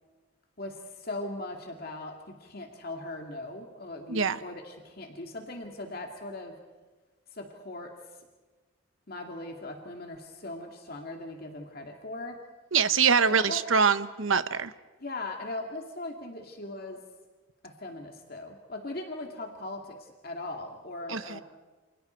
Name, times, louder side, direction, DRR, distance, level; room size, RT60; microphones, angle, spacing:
voice 1, 0.6-6.5 7.3-8.3 9.1-12.4 13.2-13.6 15.0-17.0 17.6-21.4, left 2 dB, 45° left, 2 dB, 2.4 m, -39 dB
voice 2, 12.7-14.7 21.1-21.4, right 6 dB, 70° right, 13 dB, 0.9 m, -24 dB
29.0 x 28.0 x 4.6 m, 1.3 s
head